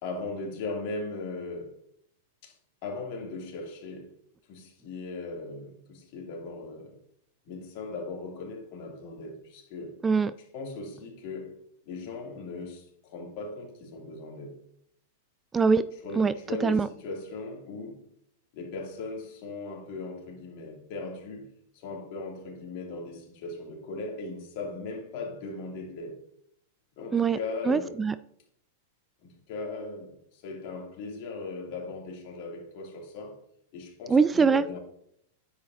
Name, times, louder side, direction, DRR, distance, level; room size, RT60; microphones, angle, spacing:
voice 1, 0.0-1.8 2.4-2.5 2.8-4.1 4.5-7.0 7.5-10.0 10.5-11.5 11.9-14.6 16.0-18.1 18.5-21.5 21.7-26.2 27.0-28.0 29.2-33.4 33.7-34.8, left 3 dB, 50° left, 2.6 m, -38 dB
voice 2, 10.0-10.3 15.5-15.9 16.2-16.3 16.6-16.9 27.1-27.4 27.7-28.1 34.1-34.6, right 5 dB, 15° right, 0.3 m, -22 dB
10.0 x 7.7 x 2.6 m
hypercardioid pair, 100°, 0 cm